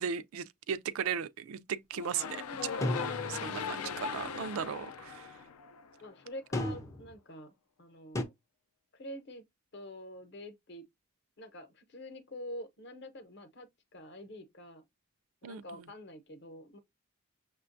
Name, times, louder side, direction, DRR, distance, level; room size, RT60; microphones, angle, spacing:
voice 1, 0.0-5.4 15.4-15.6, right 7 dB, 75° right, 0.3 m, -37 dB
sound 1, 1.9-6.1, left 6 dB, 90° left, 0.4 m, -39 dB
sound 2, 2.8-3.8 6.5-7.1 8.2-8.3, left 1 dB, 15° left, 0.4 m, -34 dB
voice 2, 3.6-4.6 6.0-8.3 8.9-9.4 9.7-10.8 11.4-14.8 15.4-16.8, left 1 dB, 50° left, 0.7 m, -47 dB
6.3 x 2.2 x 2.5 m
head